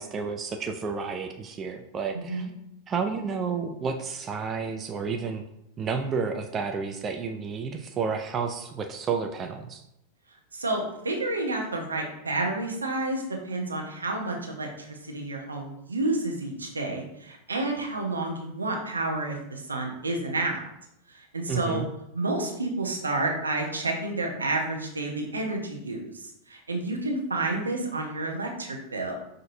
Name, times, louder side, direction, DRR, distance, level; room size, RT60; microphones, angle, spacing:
voice 1, 0.0-2.5 2.9-5.4 5.8-9.8 21.5-21.9, right 5 dB, 25° right, 5 dB, 0.3 m, -31 dB
voice 2, 2.1-2.5 10.5-20.6 21.1-21.8 22.1-29.1, right 2 dB, 75° right, 1 dB, 0.7 m, -30 dB
5.6 x 2.5 x 2.6 m, 0.82 s
figure-of-eight pair, 90°, 0 cm